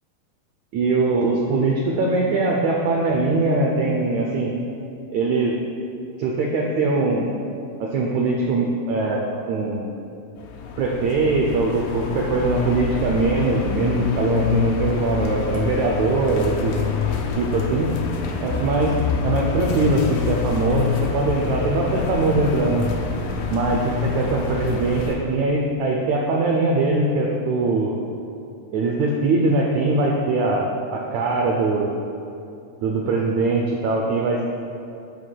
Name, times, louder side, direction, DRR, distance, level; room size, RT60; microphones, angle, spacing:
voice 1, 0.7-4.6 5.1-5.5 6.2-7.3 7.8-9.9 10.8-16.7 17.4-17.9 18.4-18.9 19.2-22.9 23.5-23.8 24.2-27.9 28.7-31.9 32.8-34.4, right 3 dB, 90° right, -1 dB, 1.6 m, -21 dB
sound 1, 10.4-25.2, left 6 dB, 80° left, 2.4 m, -26 dB
11.0 x 9.1 x 2.3 m, 2.7 s
omnidirectional pair, 4.1 m